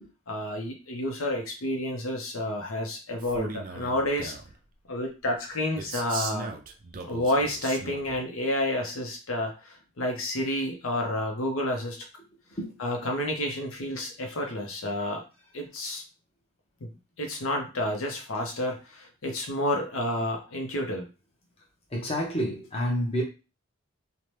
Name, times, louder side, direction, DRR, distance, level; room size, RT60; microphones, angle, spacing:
voice 1, 0.3-4.3 4.9-6.5 7.0-12.0 12.8-15.2 15.5-16.0 16.8-16.9 17.2-21.1, left 1 dB, 85° left, 0.7 m, -30 dB
Male speech man speaking, 3.2-4.5 5.8-8.2, right 4 dB, 40° right, 0.3 m, -38 dB
voice 2, 21.9-23.2, equal, 30° left, 0.7 m, -29 dB
2.8 x 2.1 x 3.2 m
head